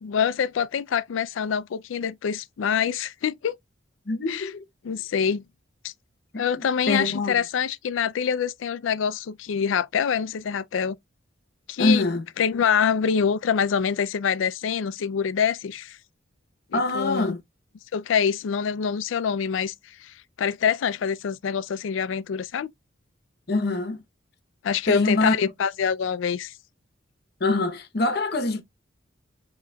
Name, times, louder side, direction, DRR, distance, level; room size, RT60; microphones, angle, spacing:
voice 1, 0.0-3.6 4.3-4.5 4.8-5.5 5.8-5.9 6.4-11.0 11.7-12.0 12.4-16.0 16.7-17.4 17.9-22.7 24.6-26.5, left 7 dB, 80° left, 0.4 m, -25 dB
voice 2, 4.1-4.6 6.3-7.4 11.8-12.2 16.7-17.4 23.5-24.0 24.9-25.3 27.4-28.6, left 2 dB, 55° left, 0.9 m, -24 dB
7.3 x 2.9 x 2.3 m
head